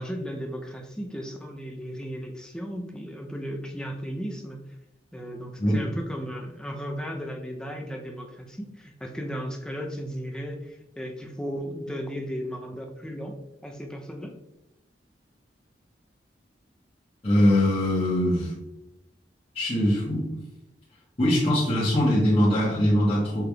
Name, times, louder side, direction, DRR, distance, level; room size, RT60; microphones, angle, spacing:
voice 1, 0.0-4.6 5.1-14.3, equal, 5° left, 2 dB, 0.5 m, -35 dB
voice 2, 17.2-18.5 19.5-20.3 21.2-23.5, left 1 dB, 35° left, -9 dB, 1.1 m, -22 dB
5.7 x 3.3 x 2.3 m, 0.92 s
head